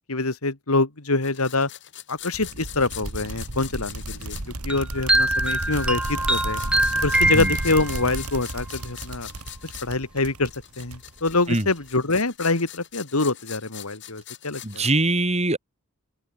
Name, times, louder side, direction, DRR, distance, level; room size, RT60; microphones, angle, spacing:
voice 1, 0.0-1.7 2.1-4.4 4.6-6.6 7.0-9.3 9.6-10.5 10.8-14.9, left 3 dB, 80° left, 2.4 m, -25 dB
sound 1, 1.2-4.5 5.2-9.9 10.5-14.9, left 13 dB, 55° left, 4.0 m, -43 dB
sound 2, 2.3-11.6, right 2 dB, 85° right, 2.5 m, -33 dB
sound 3, 4.7-8.2, right 1 dB, 5° right, 1.0 m, -23 dB
voice 2, 7.2-7.5 11.5-11.7 14.6-15.6, right 2 dB, 30° right, 4.0 m, -23 dB
open air
head